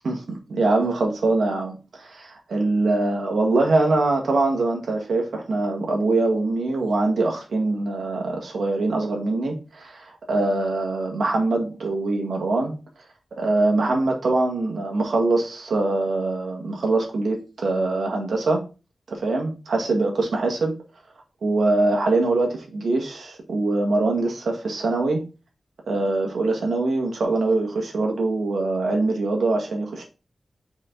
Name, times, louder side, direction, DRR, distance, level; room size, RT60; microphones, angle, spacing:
voice 1, 0.0-12.8 13.3-18.6 19.1-20.7 21.4-25.2 25.9-30.0, right 2 dB, 85° right, 1 dB, 1.8 m, -23 dB
5.0 x 4.8 x 3.9 m, 0.32 s
wide cardioid pair, 90°, 0 cm